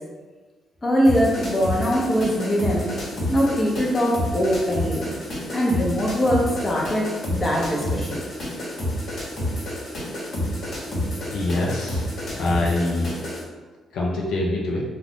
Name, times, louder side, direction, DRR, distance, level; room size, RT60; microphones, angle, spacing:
voice 1, 0.8-2.9 3.3-5.1 5.5-8.2, equal, 25° left, -2 dB, 0.7 m, -22 dB
sound 1, 1.0-13.4, left 1 dB, 55° left, 1.2 m, -29 dB
voice 2, 11.3-12.1 12.4-13.1 13.9-14.8, left 2 dB, 75° left, -3 dB, 0.5 m, -24 dB
2.4 x 2.3 x 3.5 m, 1.3 s
cardioid pair, 90°, 0 cm